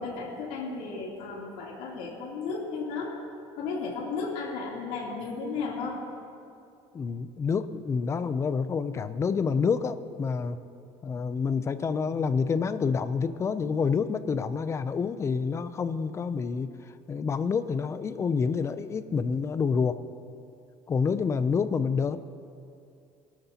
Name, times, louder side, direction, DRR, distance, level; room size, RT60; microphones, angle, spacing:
voice 1, 0.0-3.1 3.6-6.0, left 4 dB, 80° left, -3 dB, 3.0 m, -34 dB
voice 2, 6.9-10.6 11.0-16.7 17.1-20.0 20.9-22.2, left 5 dB, 20° left, 13 dB, 0.4 m, -28 dB
21.5 x 12.5 x 2.8 m, 2.5 s
cardioid pair, 155°, 13 cm